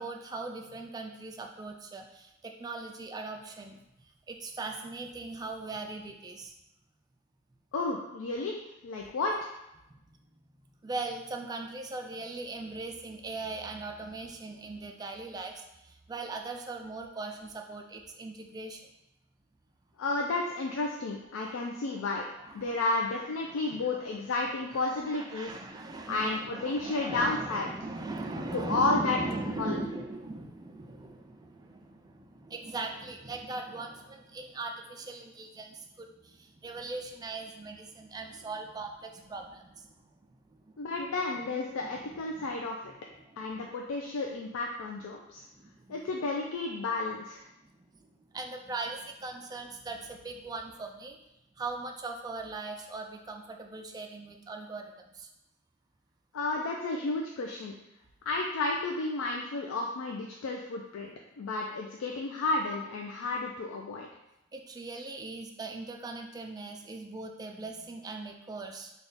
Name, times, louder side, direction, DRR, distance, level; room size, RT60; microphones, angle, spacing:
voice 1, 0.0-6.5 9.9-10.2 10.8-18.9 21.4-21.6 21.9-22.8 23.4-23.8 24.7-40.0 40.3-40.9 41.8-42.7 43.1-43.6 45.5-46.0 47.6-51.2 51.6-55.3 64.5-68.9, right 3 dB, 20° right, 4 dB, 0.3 m, -40 dB
voice 2, 7.7-9.5 20.0-22.2 22.5-25.5 26.1-27.7 28.5-29.2 29.6-29.8 40.8-42.9 43.4-45.4 45.9-47.5 56.3-57.8 58.3-61.1 61.4-64.1, left 3 dB, 90° left, 0 dB, 0.4 m, -32 dB
3.5 x 2.3 x 3.9 m, 0.89 s
head